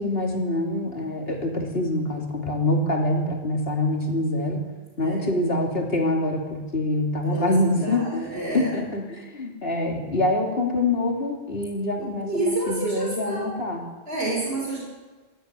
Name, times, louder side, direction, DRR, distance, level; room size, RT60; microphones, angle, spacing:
voice 1, 0.0-4.6 5.0-13.9, left 1 dB, 65° left, 1 dB, 3.4 m, -25 dB
voice 2, 5.0-5.4 7.2-8.9 12.0-13.4 14.1-14.8, right 2 dB, 65° right, -4 dB, 7.3 m, -29 dB
20.0 x 14.5 x 9.8 m, 1.3 s
omnidirectional pair, 1.1 m